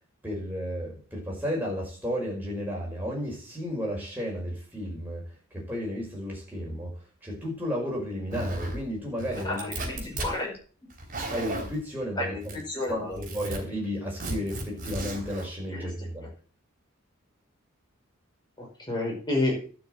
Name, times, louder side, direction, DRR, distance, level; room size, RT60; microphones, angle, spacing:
voice 1, 0.2-7.0 7.2-10.2 11.3-12.5 12.9-16.3, equal, 10° right, -3 dB, 5.4 m, -33 dB
Zipper (clothing), 8.3-8.8 9.2-10.3 10.9-11.8 12.4-12.8 13.1-13.6 14.2-15.5, right 1 dB, 40° right, 3.6 m, -34 dB
voice 2, 9.4-10.5 10.8-10.9 12.2-13.2 15.7-16.3 18.6-19.7, left 2 dB, 20° left, -2 dB, 5.4 m, -31 dB
12.0 x 6.3 x 7.9 m, 0.40 s
head